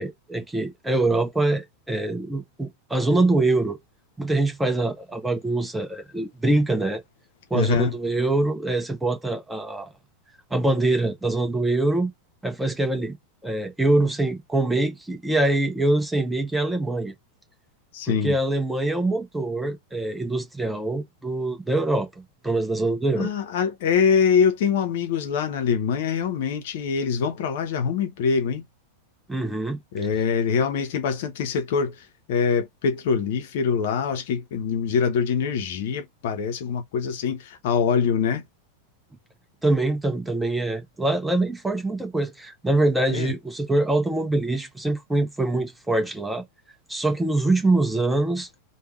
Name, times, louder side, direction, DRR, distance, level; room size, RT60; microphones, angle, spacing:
voice 1, 0.0-3.8 4.2-7.0 7.5-9.9 10.5-12.1 12.4-13.2 13.4-17.1 18.1-23.3 29.3-29.8 39.6-46.4 46.9-48.5, right 2 dB, 5° right, 0.9 m, -24 dB
voice 2, 7.5-7.9 17.9-18.3 23.2-28.6 29.9-38.4 43.1-43.3, left 6 dB, 55° left, 0.7 m, -24 dB
3.4 x 2.2 x 3.2 m
figure-of-eight pair, 90°, 0 cm